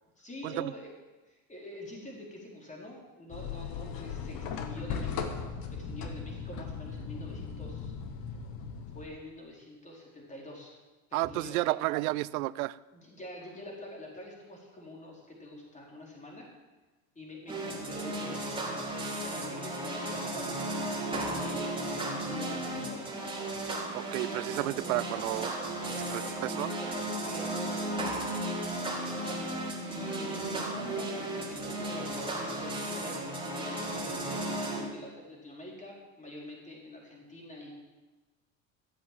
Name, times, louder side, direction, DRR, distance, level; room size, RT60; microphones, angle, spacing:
voice 1, 0.2-0.9 1.3-7.9 8.2-8.3 8.9-10.8 11.2-11.8 12.9-16.5 17.1-18.7 19.2-23.1 24.5-24.7 25.8-28.3 28.7-29.6 29.9-37.7, left 1 dB, 15° left, -1 dB, 4.3 m, -46 dB
sound 1, 3.3-9.1, left 6 dB, 55° left, 1.6 m, -38 dB
voice 2, 11.1-12.8 23.9-25.5 26.1-26.7, right 19 dB, 85° right, 20 dB, 0.5 m, -32 dB
sound 2, 17.5-34.8, right 1 dB, 10° right, 4.0 m, -35 dB
14.5 x 7.6 x 7.6 m, 1.2 s
supercardioid pair, 95°, 42 cm